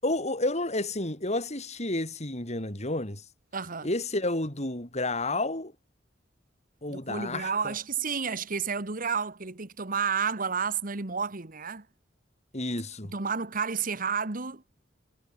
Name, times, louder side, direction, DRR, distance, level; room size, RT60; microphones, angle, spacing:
voice 1, 0.0-3.2 3.8-5.7 6.8-7.7 12.5-13.1, left 2 dB, 40° left, 6.9 m, -30 dB
voice 2, 3.5-3.9 6.9-11.8 13.1-14.6, right 6 dB, 50° right, 1.6 m, -31 dB
head